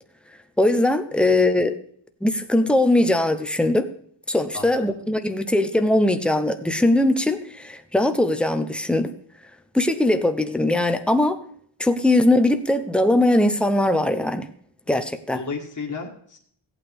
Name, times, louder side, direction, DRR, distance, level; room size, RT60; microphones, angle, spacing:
voice 1, 0.6-1.8 2.2-3.9 4.3-9.1 9.7-11.4 11.8-14.5 14.9-15.4, left 1 dB, ahead, 8 dB, 0.7 m, -20 dB
voice 2, 1.1-1.4 4.5-5.0 14.9-15.0 15.3-16.4, left 4 dB, 40° left, 0 dB, 1.8 m, -34 dB
16.5 x 8.7 x 3.5 m, 0.63 s
wide cardioid pair, 155°, 48 cm